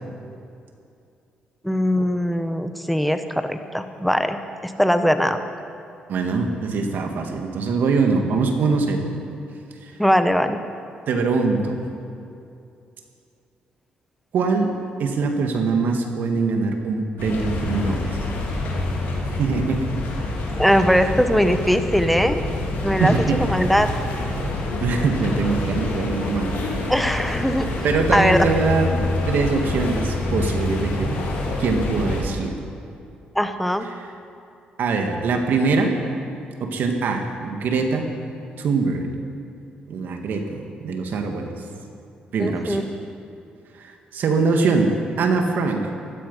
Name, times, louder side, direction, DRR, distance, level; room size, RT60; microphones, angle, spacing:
voice 1, 1.6-5.4 10.0-10.6 20.6-22.4 22.8-23.1 23.4-23.9 26.9-27.7 28.1-28.4 33.3-33.9 42.4-42.8, equal, ahead, 8 dB, 1.2 m, -20 dB
voice 2, 6.1-9.0 9.8-9.9 11.1-11.8 14.3-14.7 15.0-18.2 19.4-19.9 23.0-23.4 23.8-23.9 24.8-26.6 27.8-28.9 29.3-31.1 31.6-32.5 33.9-34.1 34.8-35.9 36.6-38.1 38.6-39.1 39.9-41.5 42.3-42.9 43.8-45.9, right 4 dB, 70° right, 4 dB, 2.0 m, -22 dB
sound 1, 17.2-32.2, left 2 dB, 80° left, 3.5 m, -26 dB
16.5 x 13.0 x 5.6 m, 2.6 s
cardioid pair, 70°, 3 cm